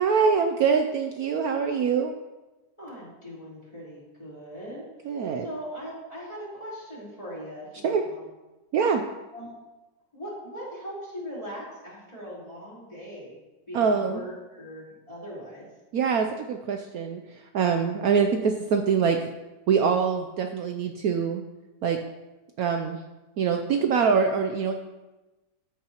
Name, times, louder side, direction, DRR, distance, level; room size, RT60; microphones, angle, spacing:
voice 1, 0.0-2.1 5.0-5.5 7.8-8.0 8.7-9.0 13.7-14.2 15.9-19.3 19.7-21.4 21.8-22.0 22.6-23.0 23.4-24.7, right 6 dB, 65° right, 5 dB, 1.1 m, -24 dB
voice 2, 2.8-4.8 5.4-8.3 9.3-9.5 10.1-13.4 13.7-15.7, equal, 20° left, -7 dB, 4.2 m, -40 dB
14.0 x 8.6 x 3.0 m, 1.1 s
omnidirectional pair, 1.8 m